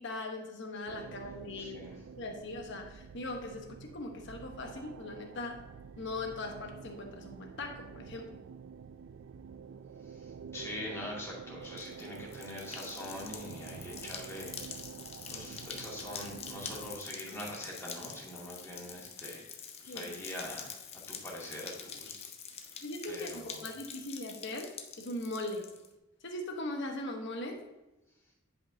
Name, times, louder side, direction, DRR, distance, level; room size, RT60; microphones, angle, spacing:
voice 1, 0.0-1.8 2.1-5.6 6.0-8.3 19.9-20.1 22.8-24.7 25.0-25.6 26.2-27.6, left 2 dB, 60° left, 2 dB, 1.1 m, -40 dB
sound 1, 0.9-17.0, right 6 dB, 65° right, 0.3 m, -48 dB
voice 2, 1.5-2.0 10.1-14.8 15.3-20.7 21.1-22.3 23.1-23.6, left 1 dB, 15° left, -5 dB, 2.2 m, -43 dB
sound 2, 11.6-25.9, left 6 dB, 30° left, 0.6 m, -46 dB
10.0 x 5.4 x 2.7 m, 0.99 s
head